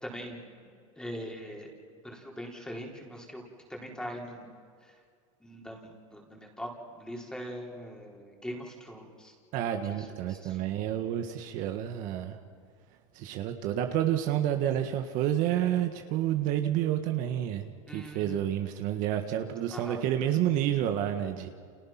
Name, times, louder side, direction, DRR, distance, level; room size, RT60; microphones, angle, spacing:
voice 1, 0.0-0.4 1.0-1.7 2.0-3.4 3.7-4.5 4.8-4.9 5.4-9.3 9.9-10.7 17.9-18.5 19.7-20.1, equal, 5° left, 0 dB, 4.1 m, -42 dB
voice 2, 9.5-12.4 13.1-21.5, right 11 dB, 50° right, 5 dB, 1.6 m, -29 dB
30.0 x 28.0 x 6.0 m, 2.1 s
supercardioid pair, 120°, 17 cm